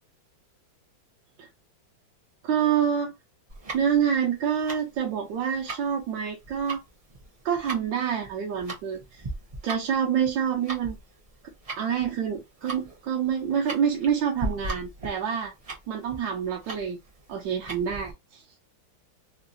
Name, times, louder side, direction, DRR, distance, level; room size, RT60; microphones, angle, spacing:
voice 1, 2.4-3.1 3.7-6.8 7.4-9.2 9.6-11.0 11.8-15.5 15.9-17.0 17.3-18.4, right 8 dB, 75° right, 1.3 m, -27 dB
Tick-tock, 3.5-18.1, right 2 dB, 35° right, 0.6 m, -39 dB
3.7 x 2.6 x 2.5 m
omnidirectional pair, 2.1 m